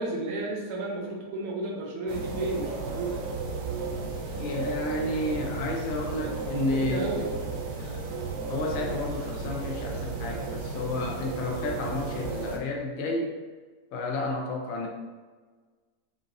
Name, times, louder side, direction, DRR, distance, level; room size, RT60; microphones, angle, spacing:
voice 1, 0.0-3.2 6.1-6.3 6.7-7.3, right 2 dB, 85° right, -2 dB, 1.4 m, -33 dB
sound 1, 2.1-12.6, right 3 dB, 65° right, 0.9 m, -34 dB
voice 2, 4.3-7.1 7.8-8.0 8.5-13.4 13.9-14.9, left 2 dB, 65° left, 1 dB, 1.0 m, -31 dB
5.5 x 2.5 x 2.6 m, 1.4 s
omnidirectional pair, 1.6 m